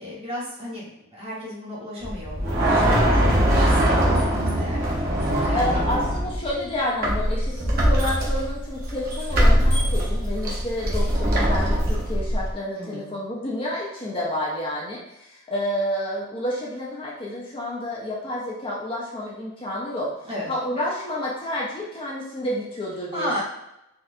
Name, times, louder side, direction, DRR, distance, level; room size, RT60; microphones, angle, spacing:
voice 1, 0.0-5.8 12.7-13.1 20.2-20.5 23.1-23.4, equal, 30° right, -7 dB, 1.3 m, -34 dB
sound 1, 2.0-6.6 7.0-12.5, equal, 50° right, 0.8 m, -21 dB
voice 2, 5.5-20.1 20.5-23.4, left 1 dB, 25° left, -4 dB, 0.5 m, -29 dB
4.1 x 2.4 x 2.5 m, 0.86 s
head